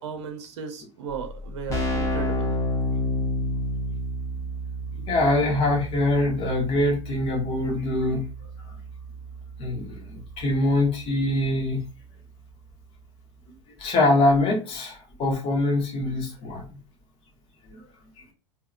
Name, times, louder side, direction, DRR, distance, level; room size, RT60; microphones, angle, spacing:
voice 1, 0.0-2.5, right 6 dB, 60° right, 6 dB, 0.7 m, -36 dB
Keyboard (musical), 1.1-1.2 1.4-12.0, equal, 20° left, 1.1 m, -31 dB
voice 2, 5.1-8.2 9.6-11.8 13.8-16.6 17.7-17.8, left 2 dB, 35° left, 1 dB, 1.3 m, -23 dB
3.5 x 2.8 x 2.4 m, 0.33 s
figure-of-eight pair, 85°, 16 cm